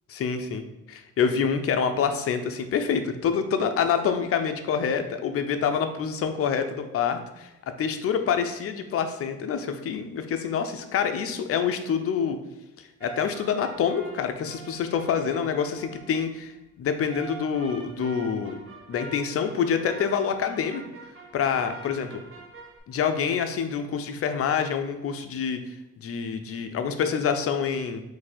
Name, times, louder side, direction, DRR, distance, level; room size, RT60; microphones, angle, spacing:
voice 1, 0.1-0.6 0.9-7.5 7.8-12.4 13.0-18.6 18.9-20.8 21.3-22.1 22.9-25.6 26.0-28.0, left 7 dB, 50° left, 7 dB, 0.5 m, -26 dB
sound 1, 13.0-16.3 17.1-22.8, right 4 dB, 45° right, 0.8 m, -45 dB
3.8 x 2.7 x 4.3 m, 0.97 s
cardioid pair, 90°, 30 cm